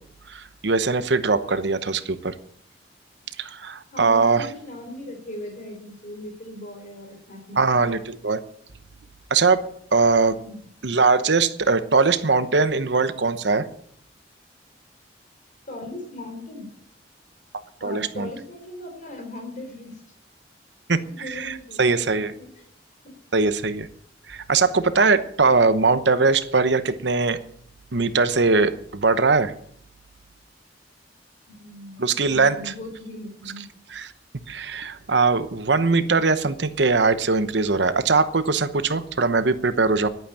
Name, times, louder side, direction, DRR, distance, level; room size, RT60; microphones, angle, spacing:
voice 1, 0.3-2.3 3.4-4.5 7.6-8.4 9.3-10.4 10.8-13.6 17.8-18.3 20.9-22.3 23.3-23.9 24.3-27.4 27.9-29.5 32.0-32.7 33.9-34.1 34.5-40.1, right 4 dB, 70° right, 12 dB, 1.0 m, -21 dB
voice 2, 3.9-7.9 10.4-10.6 15.7-16.7 17.8-20.0 21.2-22.7 23.0-23.2 31.5-33.7, left 1 dB, 45° left, 4 dB, 3.7 m, -38 dB
11.5 x 9.1 x 8.8 m, 0.64 s
head